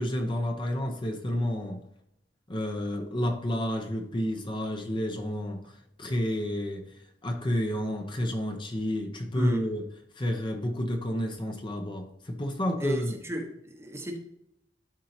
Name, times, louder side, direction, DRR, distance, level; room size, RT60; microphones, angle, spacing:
voice 1, 0.0-1.8 2.5-5.6 6.0-6.8 7.2-9.9 10.2-13.2, equal, 25° left, 0.9 m, -30 dB
voice 2, 9.3-9.7 12.8-14.2, equal, 15° right, 1.0 m, -33 dB
12.0 x 4.5 x 2.8 m
head